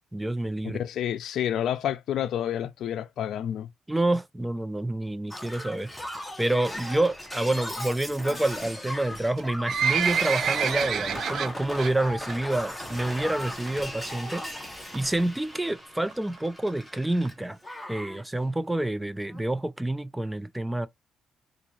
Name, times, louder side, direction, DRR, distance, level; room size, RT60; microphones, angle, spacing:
voice 1, 0.1-0.8 3.9-5.9 6.4-14.4 14.9-17.6 17.9-20.9, right 1 dB, 10° right, 0.6 m, -28 dB
voice 2, 0.6-3.7, left 10 dB, 75° left, 0.5 m, -29 dB
Shatter, 5.3-17.3 17.6-18.2 19.3-19.4, left 1 dB, 10° left, 1.3 m, -37 dB
Livestock farm animals working animals, 9.3-11.9 12.3-12.6 12.9-13.0 13.7-13.8 14.0-14.1 14.3-14.4 14.9-15.2 15.8-15.9 16.1-16.2 16.4-16.5 16.7-16.8 17.2-17.3 17.8-17.9 18.4-18.5, right 8 dB, 65° right, 0.5 m, -27 dB
4.0 x 2.6 x 3.1 m
cardioid pair, 90°, 0 cm